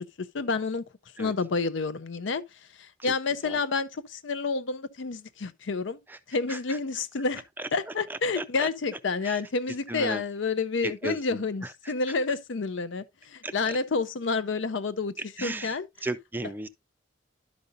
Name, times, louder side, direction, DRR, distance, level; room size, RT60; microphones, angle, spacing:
voice 1, 0.2-0.8 1.2-2.4 2.8-6.0 6.3-7.4 7.7-15.1 15.4-15.9, left 4 dB, 70° left, 0.6 m, -29 dB
voice 2, 7.6-9.4 9.9-10.2 10.8-12.2 13.4-13.8 15.2-16.7, right 2 dB, 10° right, 0.4 m, -37 dB
11.5 x 5.2 x 2.6 m
head